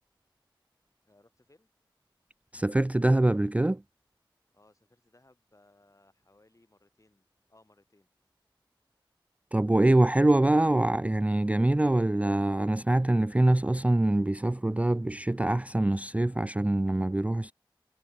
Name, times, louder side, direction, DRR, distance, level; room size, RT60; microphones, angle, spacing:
voice 1, 1.1-1.7 4.5-8.1, left 2 dB, 40° left, 4.7 m, -63 dB
voice 2, 2.5-3.8 9.5-17.5, right 1 dB, 15° right, 0.4 m, -24 dB
wide cardioid pair, 45°, 9 cm